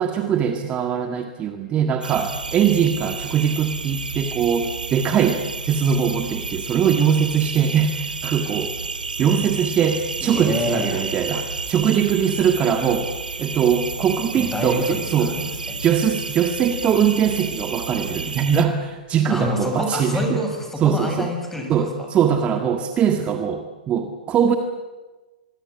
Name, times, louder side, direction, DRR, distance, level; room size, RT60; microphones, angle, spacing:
voice 1, 0.0-8.7 9.2-13.1 13.4-15.3 15.8-20.4 20.8-21.3 21.7-24.6, right 8 dB, 25° right, 6 dB, 1.8 m, -21 dB
sound 1, 2.0-18.6, right 4 dB, 80° right, 2.0 m, -31 dB
voice 2, 10.2-11.1 14.4-15.8 19.3-22.1, left 1 dB, 5° left, 2 dB, 7.0 m, -28 dB
25.5 x 23.0 x 8.5 m, 1.2 s
figure-of-eight pair, 105°, 4 cm